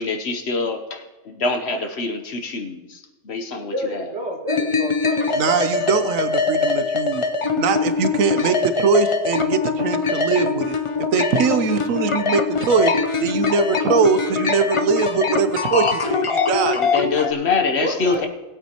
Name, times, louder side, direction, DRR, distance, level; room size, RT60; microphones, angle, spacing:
voice 1, 0.0-4.1 16.7-18.3, left 4 dB, 55° left, 5 dB, 1.1 m, -25 dB
voice 2, 3.7-6.0 17.8-18.3, equal, 60° right, 0 dB, 2.3 m, -29 dB
sound 1, 4.5-17.3, left 4 dB, 40° left, 0.4 m, -22 dB
voice 3, 5.4-7.2 7.6-10.7 11.1-12.9 13.2-16.8, right 5 dB, 85° right, 10 dB, 1.1 m, -21 dB
19.0 x 8.5 x 2.9 m, 1.1 s
omnidirectional pair, 1.4 m